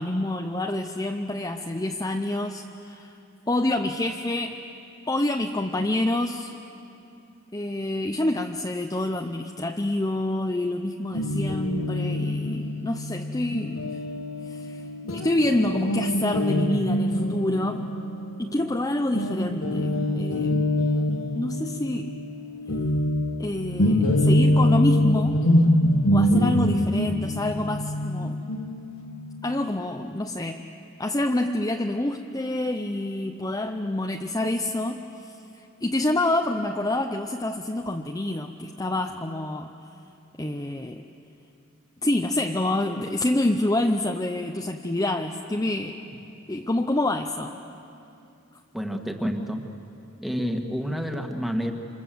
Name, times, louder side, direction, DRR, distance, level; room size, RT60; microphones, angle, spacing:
voice 1, 0.0-3.1 3.5-4.6 5.1-6.5 7.5-13.8 14.5-14.8 15.1-17.9 18.4-21.0 21.3-22.1 23.4-25.4 26.1-28.4 29.4-30.6 31.0-35.4 35.8-39.7 40.4-41.0 42.0-46.0 46.5-47.5, left 1 dB, 15° left, 3 dB, 0.7 m, -27 dB
Guitar, 11.1-18.8 19.1-29.6, left 1 dB, 75° left, 1.4 m, -25 dB
voice 2, 48.7-49.7 50.2-51.7, equal, ahead, 3 dB, 1.7 m, -29 dB
28.0 x 26.5 x 7.7 m, 2.7 s
head